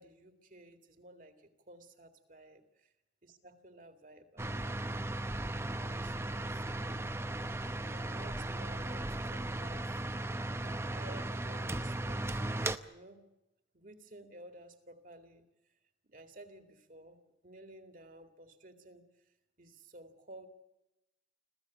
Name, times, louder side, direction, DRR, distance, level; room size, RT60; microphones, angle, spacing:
voice 1, 0.0-2.6 3.2-4.9 5.8-7.2 7.8-10.1 10.6-12.4 12.9-13.3 13.7-15.5 16.0-20.5, right 1 dB, 50° right, 7 dB, 2.3 m, -54 dB
sound 1, 4.4-12.8, right 1 dB, 15° right, 0.7 m, -36 dB
sound 2, 5.0-10.4, equal, 10° left, 1.1 m, -57 dB
26.0 x 15.5 x 8.5 m, 0.93 s
head